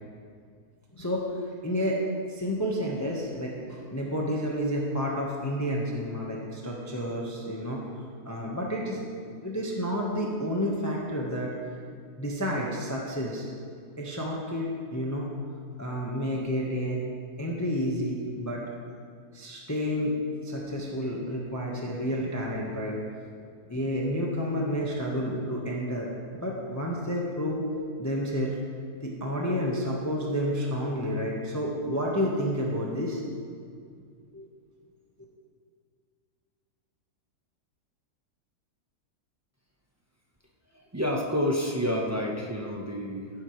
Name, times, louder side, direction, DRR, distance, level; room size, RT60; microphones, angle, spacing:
voice 1, 1.0-1.3 1.6-2.0 2.3-7.8 8.2-9.0 9.4-11.5 12.2-13.5 14.0-15.3 15.8-17.1 17.4-18.6 19.3-22.9 23.7-27.6 28.0-28.6 29.0-33.2 34.3-34.5, equal, 10° left, -3 dB, 1.1 m, -30 dB
voice 2, 40.7-43.3, equal, 15° right, -1 dB, 0.8 m, -29 dB
15.0 x 11.0 x 3.2 m, 2.2 s
omnidirectional pair, 1.7 m